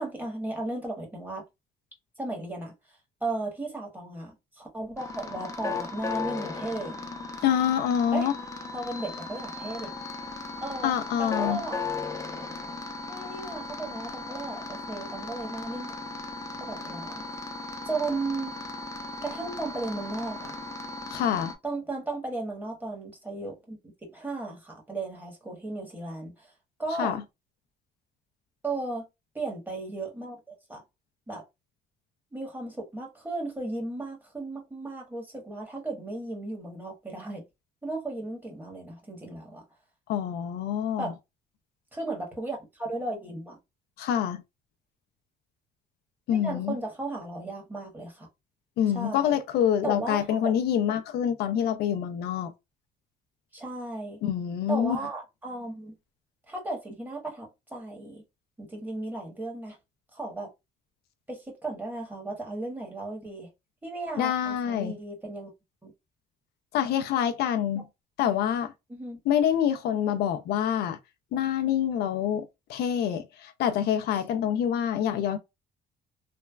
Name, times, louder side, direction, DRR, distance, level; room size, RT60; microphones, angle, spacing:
voice 1, 0.0-1.4 2.2-2.7 3.2-7.0 8.1-8.3 8.7-9.9 10.6-10.9 11.2-11.8 13.1-15.9 16.6-17.2 17.8-18.6 19.2-20.6 21.6-26.5 26.8-27.2 28.6-29.1 29.3-30.8 31.3-31.4 32.3-37.4 37.8-39.6 41.0-41.1 41.9-43.6 46.3-48.3 48.9-49.4 49.8-50.6 50.9-51.0 51.3-51.4 53.5-54.2 54.7-55.9 56.5-58.2 58.6-59.8 60.1-60.5 61.3-63.5 63.8-65.5 65.8-65.9 68.9-69.2, right 2 dB, 10° right, 1.2 m, -35 dB
sound 1, 5.0-21.5, left 3 dB, 20° left, 0.6 m, -37 dB
voice 2, 7.4-8.3 10.8-11.6 21.1-21.5 27.0-27.2 40.1-41.1 44.0-44.4 46.3-46.7 48.8-52.5 54.2-55.0 64.2-65.0 66.7-67.8 68.2-68.7 69.3-71.0 71.3-72.4 72.7-75.4, left 9 dB, 70° left, 0.4 m, -26 dB
3.2 x 2.1 x 2.2 m
cardioid pair, 110°, 17 cm